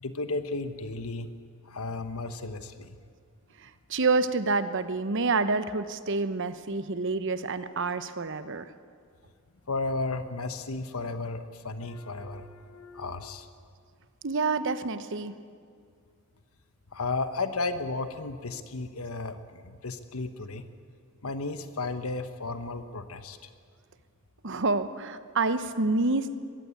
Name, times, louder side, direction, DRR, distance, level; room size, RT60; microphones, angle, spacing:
voice 1, 0.0-1.3 1.7-3.0 9.7-13.5 16.9-20.6 21.2-23.4, left 3 dB, 85° left, 9 dB, 1.2 m, -34 dB
voice 2, 3.6-8.7 14.2-15.3 24.4-26.4, right 3 dB, 60° right, 12 dB, 1.0 m, -28 dB
21.5 x 15.5 x 9.7 m, 2.1 s
head